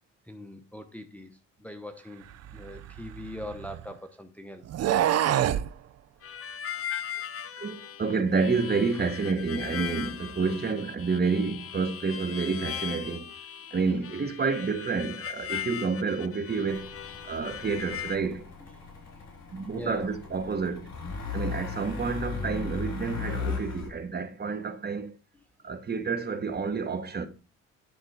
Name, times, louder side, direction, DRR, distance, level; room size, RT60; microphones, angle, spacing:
voice 1, 0.3-2.2 2.5-4.6 6.7-6.9 8.9-9.1 13.6-13.7 18.6-18.7 19.7-20.1, left 1 dB, 5° left, 0.9 m, -42 dB
sound 1, 2.4-3.9 4.6-5.7, right 11 dB, 55° right, 0.6 m, -26 dB
Harmonica, 6.2-18.2, left 9 dB, 50° left, 0.6 m, -39 dB
voice 2, 7.6-13.3 13.7-17.0 17.2-18.5 19.5-20.9 21.3-25.1 25.6-27.3, right 4 dB, 35° right, 1.3 m, -29 dB
sound 2, 16.7-23.9, left 5 dB, 65° left, 4.1 m, -37 dB
10.5 x 3.8 x 4.8 m
cardioid pair, 90°, 30 cm